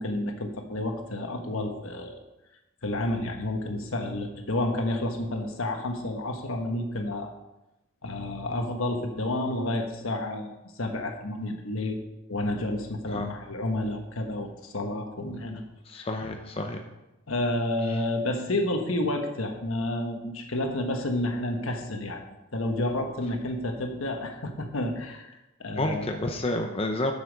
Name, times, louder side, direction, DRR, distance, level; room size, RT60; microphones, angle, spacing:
voice 1, 0.0-2.2 2.8-7.3 8.0-12.0 12.3-15.6 15.9-16.1 17.3-22.2 22.5-25.3 25.6-26.1, left 1 dB, 75° left, 4 dB, 1.3 m, -30 dB
voice 2, 15.9-16.8 25.8-27.1, left 2 dB, 25° left, 4 dB, 0.6 m, -29 dB
8.1 x 7.2 x 5.1 m, 0.97 s
head